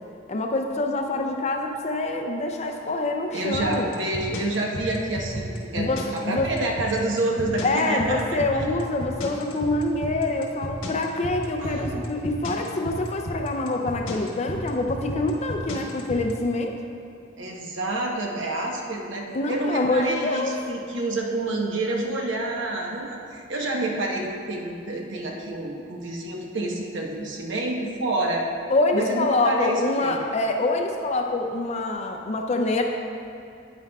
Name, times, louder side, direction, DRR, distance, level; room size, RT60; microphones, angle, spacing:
voice 1, 0.3-3.9 5.8-6.5 7.6-16.7 19.3-20.5 28.7-32.8, left 2 dB, 35° left, 3 dB, 0.5 m, -25 dB
voice 2, 3.3-8.7 11.6-12.2 17.4-28.5 28.9-30.2, right 2 dB, 65° right, 0 dB, 1.0 m, -28 dB
sound 1, 3.5-16.3, equal, 75° left, 1.3 m, -32 dB
10.5 x 9.0 x 2.3 m, 2.6 s
head